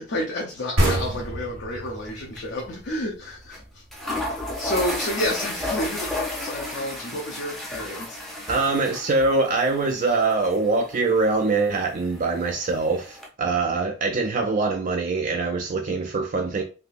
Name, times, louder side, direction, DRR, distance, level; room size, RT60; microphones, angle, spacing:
voice 1, 0.0-3.8 4.1-8.2 10.0-10.2, left 1 dB, 60° left, 0.6 m, -30 dB
sound 1, 0.8-4.2, right 1 dB, 85° right, 1.0 m, -27 dB
sound 2, 1.9-2.1 2.4-2.5 3.5-3.6 3.9-13.3, left 1 dB, ahead, 0.6 m, -33 dB
voice 2, 8.5-16.6, right 3 dB, 40° right, 0.4 m, -23 dB
3.5 x 2.6 x 2.4 m
head